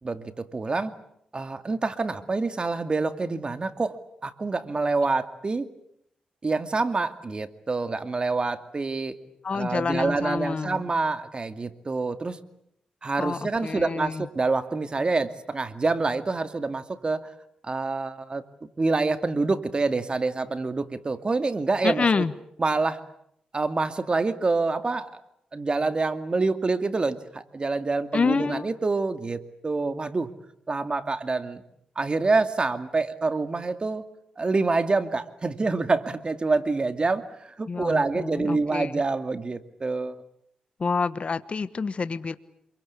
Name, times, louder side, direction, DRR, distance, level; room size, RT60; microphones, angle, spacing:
voice 1, 0.0-0.9 1.3-4.0 4.2-5.7 6.4-9.1 9.5-12.4 13.0-17.3 17.6-18.4 18.8-22.2 22.6-23.0 23.5-25.2 25.5-30.3 30.7-31.6 32.0-34.0 34.4-40.1, right 3 dB, 35° right, 10 dB, 2.3 m, -26 dB
voice 2, 9.4-10.8 13.2-14.2 21.8-22.3 28.1-28.7 37.7-39.0 40.8-42.4, left 5 dB, 50° left, 13 dB, 1.3 m, -27 dB
27.5 x 24.0 x 8.5 m, 0.73 s
cardioid pair, 60°, 3 cm